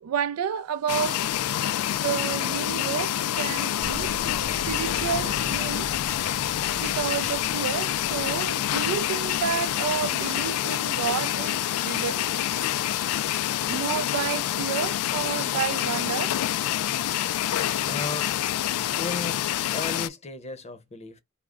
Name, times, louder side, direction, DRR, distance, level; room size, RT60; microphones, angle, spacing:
voice 1, 0.0-1.3 2.0-4.1 4.7-5.9 6.8-12.3 13.6-16.3, right 8 dB, 85° right, 0.3 m, -30 dB
sound 1, 0.9-20.1, left 12 dB, 85° left, 0.3 m, -27 dB
sound 2, 3.8-10.1, right 2 dB, 45° right, 0.9 m, -41 dB
voice 2, 17.8-18.3 19.0-19.4 19.7-21.2, left 3 dB, 30° left, 0.6 m, -34 dB
3.6 x 2.0 x 3.6 m
head